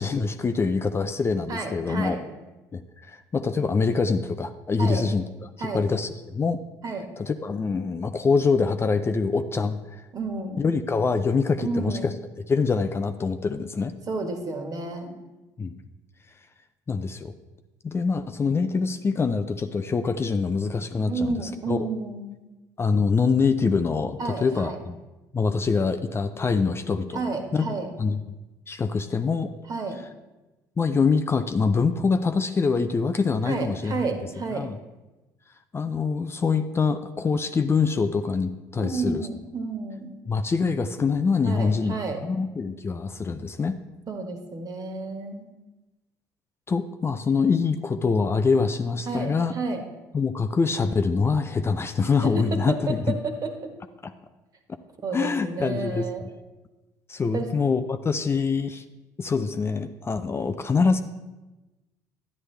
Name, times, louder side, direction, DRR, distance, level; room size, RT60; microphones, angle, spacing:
voice 1, 0.0-2.2 2.7-2.8 3.1-5.3 5.7-6.6 7.2-10.0 10.6-12.1 12.5-13.9 15.6-15.8 16.9-17.3 17.8-21.1 21.7-21.8 22.8-25.0 25.3-27.2 27.5-27.7 28.0-28.2 28.7-29.5 30.8-34.0 34.5-34.8 35.7-39.3 40.3-42.0 42.2-43.8 46.7-49.5 50.1-53.1 54.0-54.1 55.1-56.1 57.1-58.8 59.2-61.0, left 4 dB, 25° left, 8 dB, 0.5 m, -24 dB
voice 2, 1.5-2.2 4.8-5.0 5.6-5.8 6.8-7.1 10.1-10.6 11.6-12.1 14.1-15.2 21.0-22.4 24.2-24.8 27.1-27.9 29.7-30.0 33.4-34.7 38.8-40.2 41.4-42.2 44.1-45.5 49.0-49.8 52.2-53.7 55.0-56.2 57.3-57.5, right 3 dB, 40° right, 4 dB, 1.7 m, -31 dB
11.0 x 9.5 x 3.4 m, 1.1 s
hypercardioid pair, 65°, 9 cm